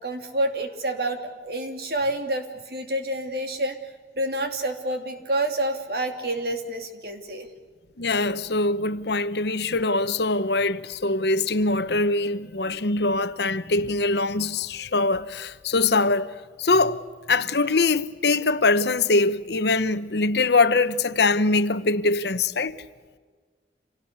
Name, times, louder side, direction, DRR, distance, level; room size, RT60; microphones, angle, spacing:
voice 1, 0.0-3.8 4.2-7.5, right 1 dB, 55° right, 2.8 m, -28 dB
voice 2, 8.0-16.3 16.6-17.0 17.3-22.8, left 3 dB, 65° left, 1.0 m, -23 dB
27.5 x 18.5 x 8.0 m
head